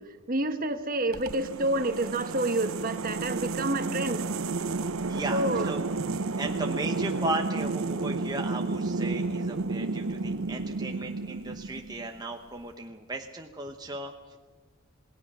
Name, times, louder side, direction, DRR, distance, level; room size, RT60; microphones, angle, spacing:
voice 1, 0.3-4.2 5.3-5.7, right 2 dB, 40° right, 8 dB, 1.4 m, -28 dB
sound 1, 1.1-12.2, right 3 dB, 75° right, 0.8 m, -32 dB
voice 2, 5.0-14.4, right 2 dB, 20° right, 3 dB, 0.9 m, -36 dB
27.5 x 18.5 x 6.3 m, 1.3 s
head